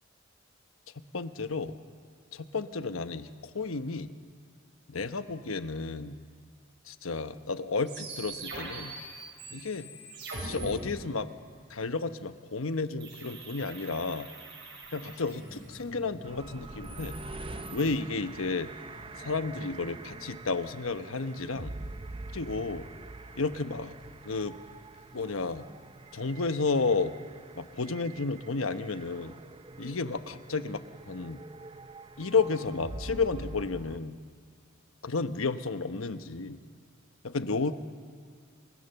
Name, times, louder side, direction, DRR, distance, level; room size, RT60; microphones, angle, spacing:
voice 1, 1.1-1.7 2.3-4.1 4.9-6.2 6.9-8.9 9.5-9.9 10.4-11.3 11.7-14.3 14.9-17.1 17.7-18.7 19.2-21.7 22.3-22.9 23.3-23.9 24.2-24.5 25.1-25.6 26.1-27.1 27.6-29.3 29.8-31.4 32.2-34.2 35.0-36.6 37.2-37.7, left 4 dB, 85° left, 10 dB, 1.0 m, -32 dB
sound 1, 7.9-10.7 13.0-15.8 16.6-17.9, right 3 dB, 60° right, 7.1 m, -43 dB
sound 2, 14.8-27.8, equal, 45° left, 6.7 m, -53 dB
sound 3, 16.2-34.0, right 2 dB, 25° right, 0.5 m, -45 dB
28.5 x 24.0 x 6.9 m, 2.2 s
head